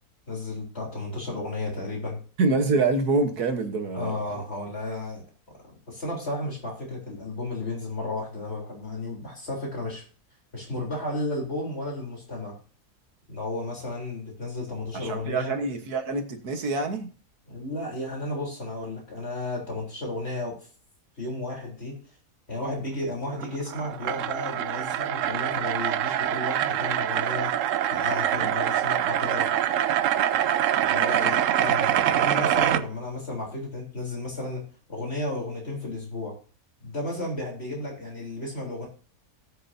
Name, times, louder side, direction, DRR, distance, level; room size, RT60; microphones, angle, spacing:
voice 1, 0.3-2.2 3.9-5.6 5.9-10.0 10.5-12.6 13.3-15.5 17.5-20.6 21.2-22.0 22.5-27.5 27.9-29.5 30.9-34.6 34.9-36.3 36.8-38.9, left 2 dB, 40° left, -2 dB, 3.9 m, -33 dB
voice 2, 2.4-4.2 14.9-17.1 28.4-28.5 31.1-31.3, right 3 dB, 80° right, 6 dB, 1.9 m, -26 dB
sound 1, 23.3-32.8, right 10 dB, 65° right, 0.9 m, -25 dB
19.0 x 6.6 x 2.7 m, 0.38 s
omnidirectional pair, 1.6 m